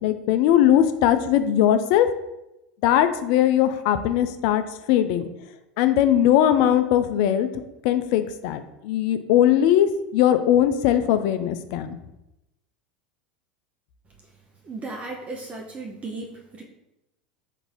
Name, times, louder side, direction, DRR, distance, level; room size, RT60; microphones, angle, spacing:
voice 1, 0.0-2.1 2.8-4.6 4.9-5.3 5.8-7.5 7.8-9.9 10.1-12.0, left 11 dB, 60° left, 10 dB, 0.4 m, -20 dB
voice 2, 14.6-16.6, right 3 dB, 30° right, 0 dB, 0.7 m, -35 dB
3.9 x 2.7 x 4.4 m, 0.90 s
hypercardioid pair, 90°, 5 cm